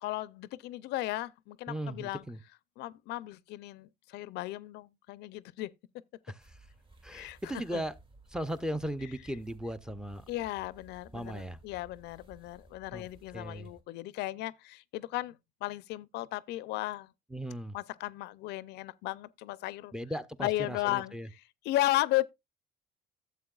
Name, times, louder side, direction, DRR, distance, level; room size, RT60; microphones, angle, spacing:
voice 1, 0.0-2.2 2.8-5.7 7.1-7.8 10.3-15.3 15.6-17.1 17.7-19.9 20.4-21.1 21.6-22.2, left 16 dB, 85° left, 0.5 m, -35 dB
voice 2, 1.7-2.4 6.3-6.4 7.0-7.9 8.3-10.2 11.1-11.6 12.9-13.1 13.3-13.7 17.3-17.8 19.9-21.3, equal, 5° right, 0.5 m, -37 dB
sound 1, 6.4-13.8, right 2 dB, 30° right, 1.5 m, -57 dB
12.5 x 7.4 x 2.3 m
cardioid pair, 110°, 17 cm